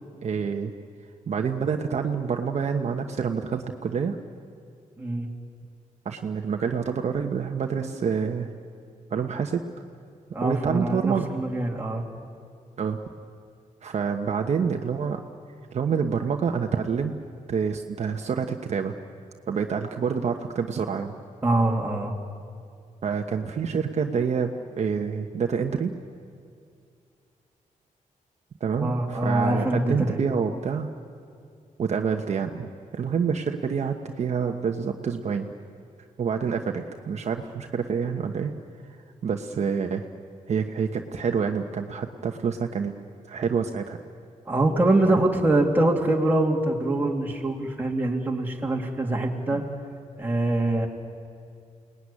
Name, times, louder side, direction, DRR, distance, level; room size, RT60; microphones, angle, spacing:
voice 1, 0.2-0.7 1.3-4.2 6.0-8.5 9.1-9.6 10.4-11.3 12.8-13.0 13.8-15.2 15.7-17.2 17.5-18.9 19.5-21.1 23.0-25.9 28.6-30.9 31.8-35.5 36.2-38.5 39.2-40.1 40.5-42.9 43.3-44.0 45.0-45.2 49.5-49.6, right 6 dB, 55° right, 4 dB, 1.2 m, -27 dB
voice 2, 5.0-5.3 10.3-12.0 21.4-22.1 28.8-30.2 44.5-49.6 50.2-50.9, right 2 dB, 15° right, 0 dB, 2.7 m, -24 dB
29.0 x 19.5 x 9.9 m, 2.4 s
wide cardioid pair, 155°, 14 cm